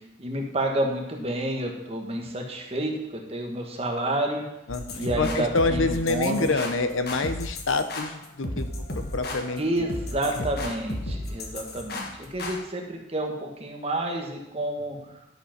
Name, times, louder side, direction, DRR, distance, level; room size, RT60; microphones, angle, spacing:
voice 1, 0.2-4.4 4.9-6.6 9.6-15.0, right 1 dB, 30° right, 1 dB, 1.4 m, -29 dB
voice 2, 4.7-9.9 10.4-10.7, left 3 dB, 85° left, 9 dB, 0.8 m, -27 dB
sound 1, 4.7-12.6, left 1 dB, 50° left, 1.3 m, -34 dB
11.5 x 5.2 x 5.9 m, 0.89 s
head